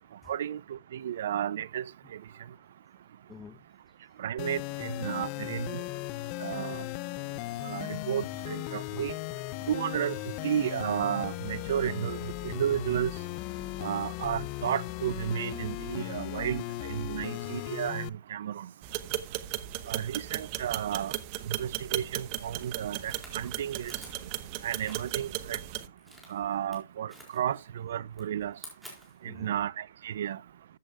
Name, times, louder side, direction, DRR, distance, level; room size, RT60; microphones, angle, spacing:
voice 1, 0.3-1.8 4.2-5.8 6.4-6.8 7.6-9.1 9.7-10.1 10.4-12.2 12.4-13.1 13.8-18.7 19.9-21.1 21.5-23.9 24.6-25.6 26.3-28.5 29.4-30.4, right 10 dB, 65° right, 0.5 m, -32 dB
voice 2, 3.3-3.6 3.9-4.2 9.0-9.1 23.4-23.5 24.5-24.6 29.2-29.6, left 5 dB, 10° left, 0.8 m, -53 dB
sound 1, 4.4-18.1, left 19 dB, 35° left, 0.4 m, -37 dB
sound 2, 18.8-25.9, right 14 dB, 40° right, 0.8 m, -36 dB
sound 3, 23.1-25.4 26.0-26.8 27.1-27.8 28.1-29.3, right 1 dB, 5° right, 4.3 m, -51 dB
14.0 x 8.0 x 2.3 m
hypercardioid pair, 135°, 0 cm